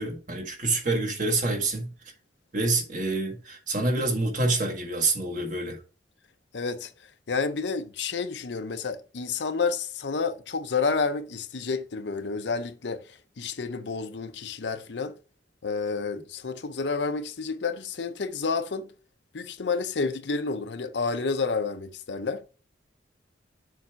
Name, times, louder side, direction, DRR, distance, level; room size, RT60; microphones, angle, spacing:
voice 1, 0.0-1.9 2.5-5.8, right 2 dB, 45° right, 1.7 m, -27 dB
voice 2, 6.5-6.9 7.3-15.2 15.6-18.9 19.3-22.4, left 4 dB, 75° left, 0.7 m, -30 dB
7.1 x 3.5 x 5.7 m
head